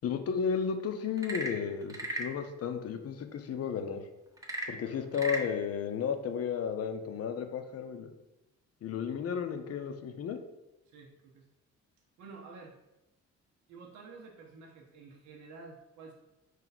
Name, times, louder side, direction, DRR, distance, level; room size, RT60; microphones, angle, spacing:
voice 1, 0.0-4.0 4.7-8.1 8.8-10.4, left 7 dB, 50° left, 7 dB, 0.6 m, -33 dB
Frog / Percussion / Wood, 1.1-2.4 4.4-5.5, right 1 dB, 10° right, 0.6 m, -36 dB
voice 2, 4.7-5.2 10.9-11.4 12.2-12.8 13.7-16.1, right 4 dB, 70° right, 0 dB, 0.7 m, -50 dB
4.5 x 2.7 x 3.9 m, 0.96 s
cardioid pair, 90°, 30 cm